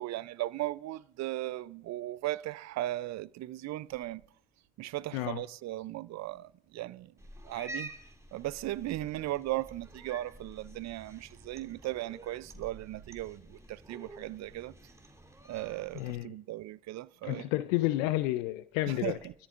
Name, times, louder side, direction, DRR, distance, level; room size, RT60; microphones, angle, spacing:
voice 1, 0.0-4.2 4.8-7.1 7.4-7.9 8.3-14.7 15.5-17.5 18.9-19.3, right 16 dB, 45° right, 0.5 m, -37 dB
Cat, 7.2-16.2, right 1 dB, 5° right, 2.5 m, -49 dB
voice 2, 16.0-16.3 17.2-19.2, left 17 dB, 75° left, 0.6 m, -30 dB
25.5 x 13.0 x 2.5 m
hypercardioid pair, 55°, 39 cm